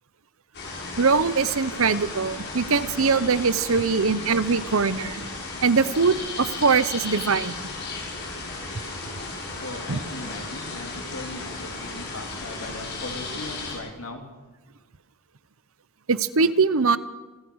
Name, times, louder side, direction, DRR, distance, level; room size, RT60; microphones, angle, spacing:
sound 1, 0.5-13.8, left 3 dB, 50° left, 6.4 m, -35 dB
voice 1, 1.0-5.2 5.6-7.6 9.9-10.0 16.1-17.0, right 4 dB, 65° right, 16 dB, 0.8 m, -22 dB
voice 2, 9.4-14.3 14.6-14.8, left 2 dB, 65° left, 4 dB, 3.3 m, -38 dB
27.5 x 15.5 x 6.4 m, 1.2 s
head